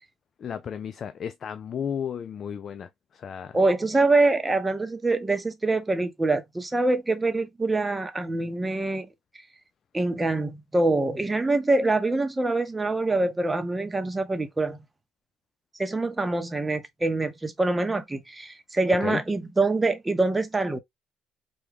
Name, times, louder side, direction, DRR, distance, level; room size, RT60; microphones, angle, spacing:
voice 1, 0.4-3.6 19.0-19.2, left 8 dB, 50° left, 0.4 m, -33 dB
voice 2, 3.5-9.1 9.9-14.8 15.8-20.8, right 2 dB, 15° right, 0.8 m, -25 dB
3.5 x 2.3 x 3.3 m
cardioid pair, 85°, 0 cm